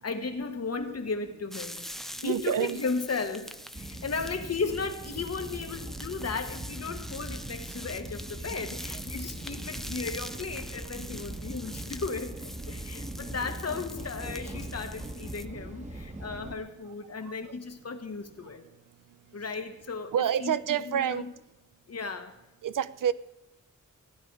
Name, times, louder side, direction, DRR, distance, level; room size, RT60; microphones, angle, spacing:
voice 1, 0.0-18.6 19.3-20.1 20.4-21.3 21.9-22.4, left 4 dB, 50° left, 7 dB, 1.4 m, -35 dB
sound 1, 1.5-15.4, equal, ahead, 0.6 m, -44 dB
voice 2, 2.2-2.8 20.1-21.2 22.6-23.1, right 9 dB, 80° right, 16 dB, 0.6 m, -27 dB
sound 2, 3.7-16.6, right 1 dB, 20° right, 1.6 m, -40 dB
16.0 x 11.0 x 4.8 m, 0.92 s
wide cardioid pair, 110°, 32 cm